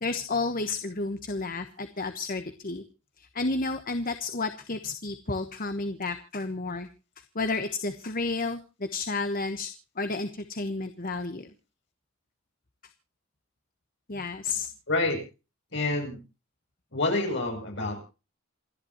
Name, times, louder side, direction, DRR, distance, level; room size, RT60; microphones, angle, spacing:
voice 1, 0.0-2.8 3.2-6.9 7.3-9.7 10.0-11.5 14.1-14.7, left 3 dB, 40° left, 8 dB, 1.2 m, -31 dB
voice 2, 14.9-15.2 15.7-16.2 16.9-18.0, left 2 dB, 60° left, 3 dB, 7.6 m, -27 dB
28.0 x 10.5 x 3.1 m, 0.33 s
head